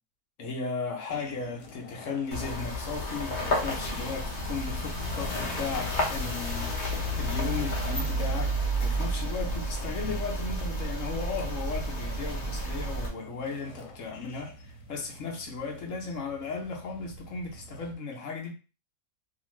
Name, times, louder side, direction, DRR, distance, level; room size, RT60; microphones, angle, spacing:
voice 1, 0.4-18.5, left 4 dB, 60° left, 1.0 m, -36 dB
sound 1, 1.1-18.0, left 1 dB, 90° left, 1.2 m, -48 dB
sound 2, 2.3-13.1, equal, 40° left, 0.8 m, -31 dB
2.8 x 2.5 x 3.0 m
omnidirectional pair, 1.6 m